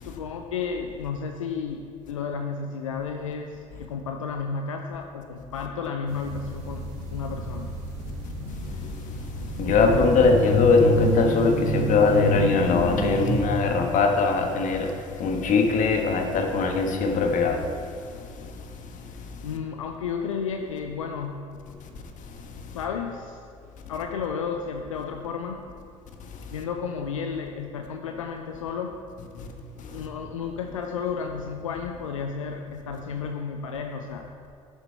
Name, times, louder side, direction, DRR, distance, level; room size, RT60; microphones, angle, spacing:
voice 1, 0.0-7.7 19.4-21.5 22.7-23.4 23.9-25.6 26.5-28.9 29.9-34.2, left 6 dB, 85° left, 4 dB, 0.5 m, -32 dB
sound 1, 6.1-13.4, equal, 80° right, 2.1 m, -29 dB
voice 2, 9.6-14.9 15.2-17.6, left 4 dB, 50° left, 3 dB, 1.4 m, -21 dB
11.5 x 6.7 x 4.5 m, 2.5 s
hypercardioid pair, 60°, 16 cm